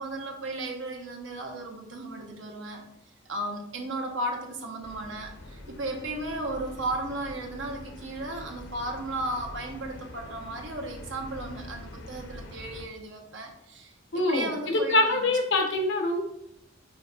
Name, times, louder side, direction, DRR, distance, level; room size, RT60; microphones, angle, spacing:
voice 1, 0.0-2.9 3.2-15.3, right 1 dB, 75° right, 2 dB, 1.1 m, -35 dB
sound 1, 4.8-12.9, left 1 dB, 85° left, 0.8 m, -45 dB
voice 2, 14.1-16.2, left 2 dB, 65° left, 4 dB, 1.1 m, -24 dB
5.1 x 4.7 x 4.0 m, 0.78 s
head